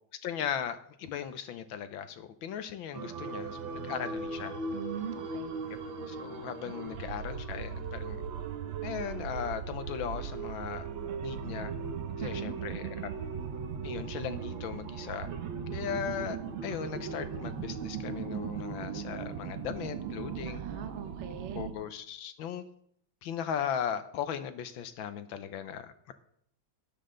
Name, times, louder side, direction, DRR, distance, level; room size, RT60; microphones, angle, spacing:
voice 1, 0.2-4.5 5.7-5.8 6.1-8.2 8.8-10.9 11.2-11.7 12.2-13.1 13.8-15.3 15.7-20.6 21.6-22.7 23.2-26.1, left 8 dB, 75° left, 11 dB, 1.6 m, -37 dB
sound 1, 2.9-21.7, right 6 dB, 75° right, 1.8 m, -38 dB
voice 2, 4.7-5.6 6.6-6.7 12.2-12.5 20.4-21.7, right 8 dB, 50° right, 8 dB, 0.8 m, -40 dB
12.0 x 9.8 x 3.8 m, 0.67 s
omnidirectional pair, 2.2 m